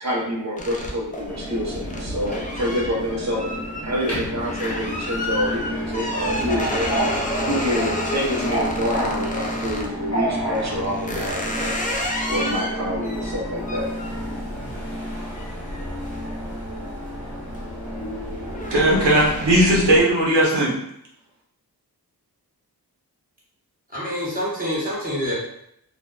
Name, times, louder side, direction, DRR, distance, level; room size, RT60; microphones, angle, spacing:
voice 1, 0.0-3.5 3.8-11.8 12.3-13.9, equal, 45° right, -3 dB, 0.8 m, -27 dB
sound 1, 0.6-9.9 10.5-17.0 17.4-17.8 18.1-19.9, left 1 dB, 20° left, 0.4 m, -31 dB
Subway metro underground, 1.3-20.0, equal, 40° left, 0.9 m, -30 dB
voice 2, 18.7-20.7, right 1 dB, 90° right, -4 dB, 0.8 m, -17 dB
voice 3, 23.9-25.3, equal, 20° right, -7 dB, 1.0 m, -26 dB
2.5 x 2.1 x 2.3 m, 0.74 s
wide cardioid pair, 75°, 39 cm